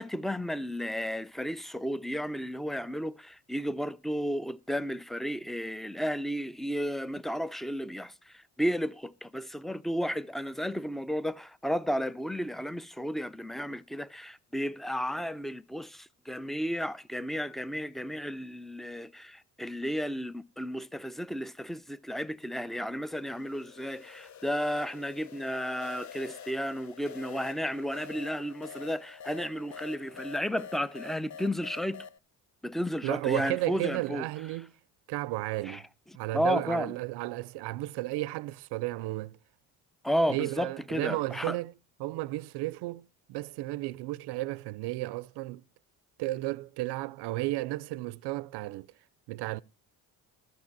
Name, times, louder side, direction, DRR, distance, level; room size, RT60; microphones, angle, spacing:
voice 1, 0.0-32.1 32.6-34.3 35.6-35.8 36.3-36.9 40.0-41.6, equal, ahead, 0.5 m, -33 dB
sound 1, 23.1-32.2, left 7 dB, 45° left, 0.7 m, -47 dB
voice 2, 33.0-34.7 35.1-35.9 36.1-39.4 40.3-41.7 42.0-45.6 46.2-48.9 49.3-49.6, right 18 dB, 75° right, 0.5 m, -33 dB
12.5 x 5.5 x 7.2 m
supercardioid pair, 70°, 40 cm